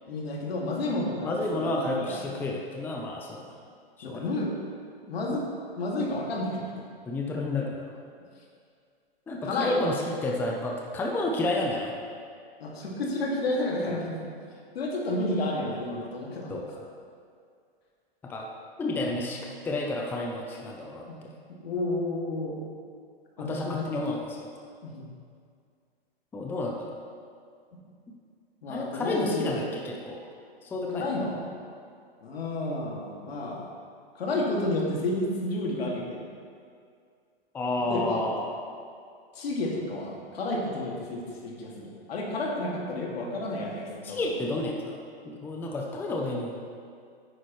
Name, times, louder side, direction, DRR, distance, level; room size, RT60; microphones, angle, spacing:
voice 1, 0.1-2.2 4.0-4.6 5.1-5.5 5.8-6.7 9.4-9.8 12.6-14.2 14.7-16.5 19.1-19.2 21.1-21.2 21.5-22.6 23.4-24.0 24.8-25.1 27.7-27.8 28.6-29.6 30.9-31.4 32.2-33.6 34.1-36.2 37.9-38.2 39.4-44.3, left 2 dB, 80° left, -2 dB, 2.3 m, -31 dB
voice 2, 1.2-3.4 4.0-4.2 7.1-7.9 9.3-12.0 16.5-16.8 18.2-18.5 18.8-21.3 23.4-24.5 26.3-26.9 28.7-30.2 30.6-31.1 37.5-38.6 44.0-45.0 45.2-46.6, left 2 dB, 5° left, 0 dB, 0.6 m, -31 dB
9.8 x 9.5 x 3.1 m, 2.2 s
hypercardioid pair, 140°, 30 cm